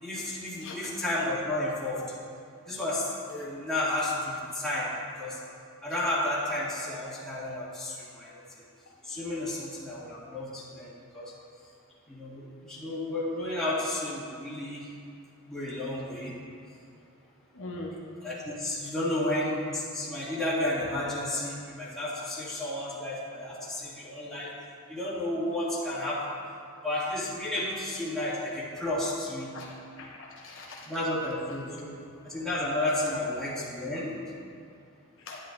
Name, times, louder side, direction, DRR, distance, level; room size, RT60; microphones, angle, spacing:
voice 1, 0.0-2.0 2.7-4.9 5.2-5.4 5.8-8.4 9.1-11.3 12.1-14.8 15.5-16.3 18.2-24.5 24.9-26.3 26.8-29.5 30.9-31.9 32.2-34.2, left 1 dB, 5° left, -10 dB, 2.3 m, -32 dB
voice 2, 17.5-18.0 29.5-30.9 35.2-35.4, left 2 dB, 60° left, -3 dB, 1.0 m, -42 dB
10.5 x 10.5 x 2.6 m, 2.4 s
head